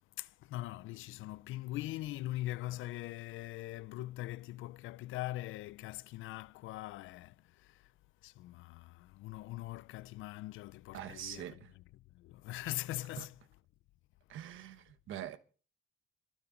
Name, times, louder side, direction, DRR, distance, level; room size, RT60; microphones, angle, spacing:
voice 1, 0.2-7.9 8.2-11.5 12.1-13.4, left 16 dB, 90° left, 0.6 m, -42 dB
voice 2, 10.9-11.7 13.2-13.3 14.3-15.4, right 11 dB, 85° right, 1.2 m, -44 dB
25.5 x 8.9 x 4.0 m
cardioid pair, 90°, 20 cm